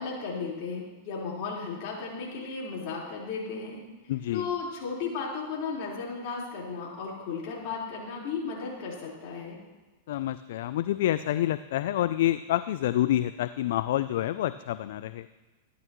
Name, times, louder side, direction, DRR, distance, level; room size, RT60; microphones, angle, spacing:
voice 1, 0.0-3.8 4.3-9.6, left 5 dB, 50° left, -4 dB, 4.2 m, -35 dB
voice 2, 4.1-4.5 10.1-15.3, left 13 dB, 70° left, 14 dB, 0.3 m, -28 dB
14.0 x 11.0 x 3.0 m, 1.2 s
hypercardioid pair, 120°, 0 cm